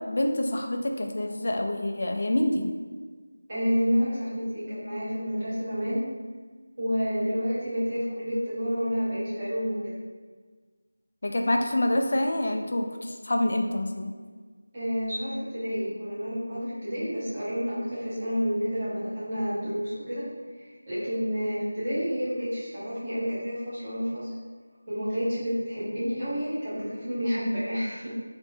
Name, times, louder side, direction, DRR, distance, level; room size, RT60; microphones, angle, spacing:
voice 1, 0.1-2.6 11.2-14.1, left 1 dB, 45° left, 4 dB, 0.3 m, -26 dB
voice 2, 3.5-6.1 6.8-10.0 14.7-20.3 20.6-24.3 24.9-28.1, equal, 25° right, -11 dB, 1.1 m, -29 dB
4.0 x 2.5 x 2.4 m, 1.5 s
figure-of-eight pair, 175°, 0 cm